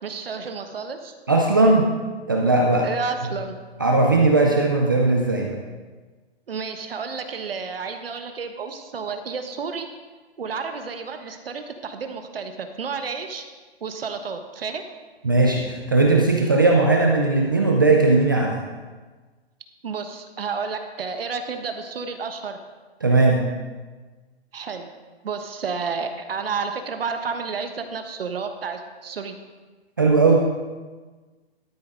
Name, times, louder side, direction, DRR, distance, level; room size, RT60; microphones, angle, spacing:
voice 1, 0.0-1.1 2.8-3.6 6.5-9.9 10.4-13.4 13.8-14.8 19.8-22.6 24.5-24.9 25.2-29.4, right 5 dB, 60° right, 7 dB, 1.1 m, -31 dB
voice 2, 1.3-1.9 2.3-2.9 3.8-5.6 15.2-18.6 23.0-23.4 30.0-30.4, right 3 dB, 20° right, 0 dB, 0.4 m, -18 dB
13.0 x 8.6 x 3.7 m, 1.3 s
hypercardioid pair, 165°, 32 cm